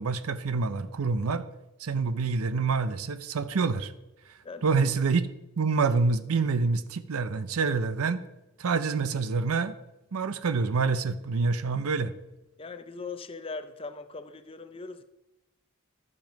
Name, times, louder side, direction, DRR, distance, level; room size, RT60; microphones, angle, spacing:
voice 1, 0.0-1.5 1.8-3.9 4.6-5.3 5.6-8.2 8.6-9.7 10.1-12.1, right 4 dB, 80° right, 14 dB, 0.6 m, -27 dB
voice 2, 12.6-15.0, left 4 dB, 25° left, 10 dB, 0.5 m, -40 dB
12.0 x 5.4 x 5.1 m, 0.99 s
head